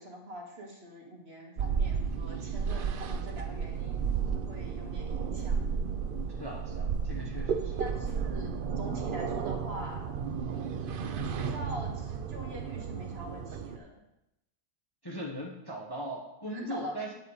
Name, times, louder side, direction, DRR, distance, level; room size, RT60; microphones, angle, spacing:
voice 1, 0.0-4.0 4.5-5.7 7.8-10.1 11.0-14.0 16.5-17.1, right 1 dB, 40° right, -1 dB, 1.9 m, -43 dB
sound 1, 1.6-13.8, right 6 dB, 65° right, 0.5 m, -33 dB
sound 2, 5.3-6.0 8.0-9.1, equal, 60° left, 4.0 m, -53 dB
voice 2, 6.4-7.8 15.0-17.1, equal, 15° left, -2 dB, 1.1 m, -39 dB
9.3 x 8.1 x 4.8 m, 0.86 s
omnidirectional pair, 1.6 m